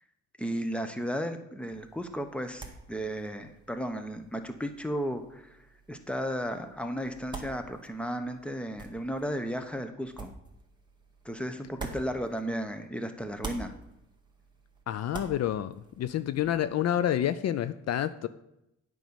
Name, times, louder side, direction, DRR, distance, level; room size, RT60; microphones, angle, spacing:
voice 1, 0.4-5.6 5.9-10.3 11.2-13.7, equal, 5° left, 8 dB, 1.0 m, -34 dB
sound 1, 1.7-12.9 13.2-16.6, right 3 dB, 15° right, 1.9 m, -47 dB
voice 2, 14.9-18.3, left 11 dB, 60° left, 13 dB, 0.5 m, -29 dB
9.2 x 5.4 x 7.0 m, 0.85 s
cardioid pair, 90°, 30 cm